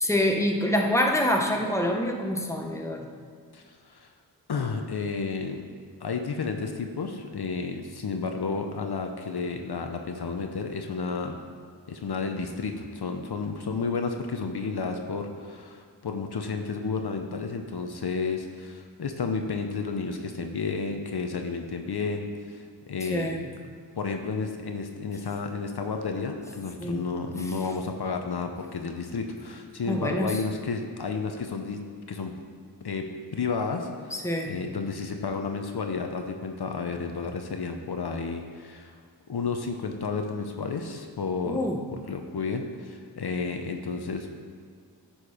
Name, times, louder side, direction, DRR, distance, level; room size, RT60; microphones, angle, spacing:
voice 1, 0.0-3.0 23.0-23.4 26.8-27.0 29.9-30.4 34.2-34.5 41.4-41.8, left 1 dB, 5° left, 2 dB, 1.0 m, -26 dB
voice 2, 3.5-4.1 4.5-5.7 6.0-11.4 11.9-23.3 23.9-31.8 32.1-32.3 32.8-38.9 39.3-41.6 42.1-44.3, left 4 dB, 65° left, 4 dB, 0.8 m, -32 dB
10.0 x 4.5 x 4.9 m, 2.1 s
wide cardioid pair, 50°, 41 cm